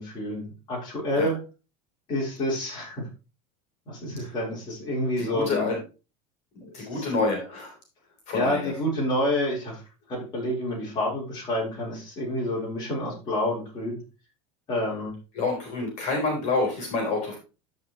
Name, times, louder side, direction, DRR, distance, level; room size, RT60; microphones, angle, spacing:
voice 1, 0.0-1.4 2.1-3.0 3.9-5.7 6.6-7.1 8.3-9.8 10.1-14.0 14.7-15.1, left 1 dB, 25° left, -4 dB, 4.0 m, -28 dB
voice 2, 5.2-5.8 6.6-7.8 8.3-8.7 15.3-17.4, left 3 dB, 45° left, 1 dB, 3.8 m, -28 dB
14.0 x 5.4 x 3.1 m, 0.31 s
supercardioid pair, 160°, 16 cm